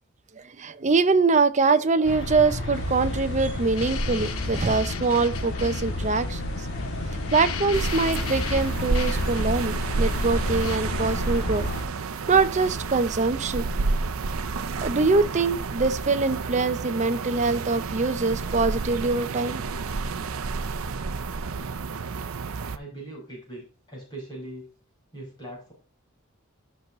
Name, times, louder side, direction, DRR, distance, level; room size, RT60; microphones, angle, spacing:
voice 1, 0.4-6.7 7.3-11.7 12.3-13.7 14.8-19.6, right 4 dB, 35° right, 0.6 m, -23 dB
sound 1, 2.0-11.8, left 1 dB, 55° left, 2.5 m, -31 dB
sound 2, 2.7-10.8, left 5 dB, 85° left, 0.8 m, -35 dB
sound 3, 7.7-22.8, right 4 dB, 85° right, 0.6 m, -30 dB
voice 2, 22.7-24.7 25.1-25.7, right 1 dB, 20° left, 5.2 m, -40 dB
13.0 x 6.1 x 3.1 m
head